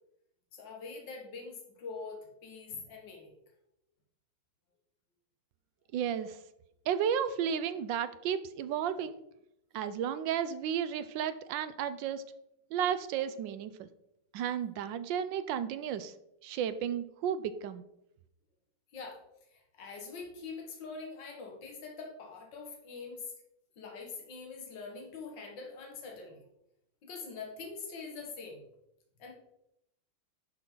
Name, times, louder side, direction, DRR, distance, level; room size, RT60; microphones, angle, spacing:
voice 1, 0.5-3.3 18.9-23.3 23.8-26.4 27.0-28.6 29.2-29.3, left 4 dB, 60° left, 1 dB, 2.4 m, -44 dB
voice 2, 5.9-6.4 6.9-9.2 9.7-12.2 12.7-13.9 14.3-16.1 16.4-17.8, right 8 dB, 75° right, 12 dB, 1.2 m, -33 dB
10.5 x 6.1 x 3.9 m, 0.81 s
omnidirectional pair, 2.3 m